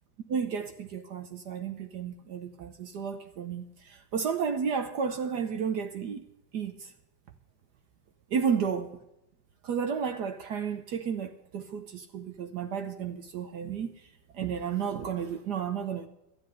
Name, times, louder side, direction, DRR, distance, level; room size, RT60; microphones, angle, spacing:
voice 1, 0.3-6.2 6.5-6.9 8.3-8.9 9.6-13.9 14.3-16.1, right 6 dB, 60° right, 1.3 m, -32 dB
12.5 x 10.0 x 6.7 m
omnidirectional pair, 2.1 m